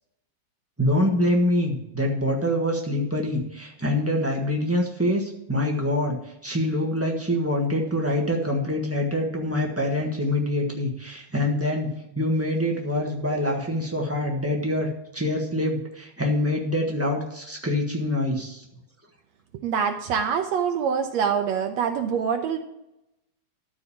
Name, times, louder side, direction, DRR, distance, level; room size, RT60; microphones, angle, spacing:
voice 1, 0.8-6.2 6.4-18.7, left 1 dB, 15° right, -1 dB, 0.4 m, -25 dB
voice 2, 19.5-22.6, right 7 dB, 75° right, 5 dB, 1.9 m, -25 dB
13.0 x 4.9 x 7.2 m, 0.84 s
omnidirectional pair, 3.3 m